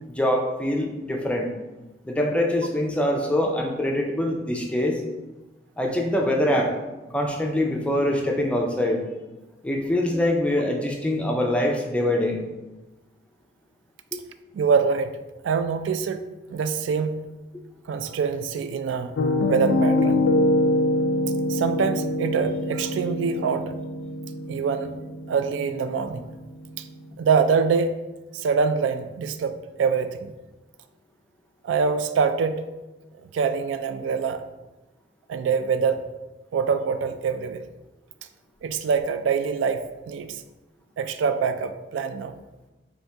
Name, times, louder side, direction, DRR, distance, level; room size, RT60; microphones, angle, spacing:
voice 1, 0.2-1.5 2.1-5.0 5.8-6.7 7.1-9.0 9.6-12.4, left 1 dB, 5° left, 0 dB, 0.4 m, -24 dB
voice 2, 14.5-15.2 15.4-16.2 16.5-17.2 17.9-19.1 19.5-20.2 21.5-23.7 24.5-25.0 25.3-26.3 26.8-26.9 27.2-27.9 28.3-30.3 31.6-32.7 33.2-34.4 35.3-36.0 36.5-37.6 38.6-40.4 41.0-42.3, right 5 dB, 90° right, 10 dB, 0.3 m, -24 dB
Piano, 19.2-27.0, left 1 dB, 90° left, 0.4 m, -25 dB
4.2 x 2.7 x 3.3 m, 1.1 s
head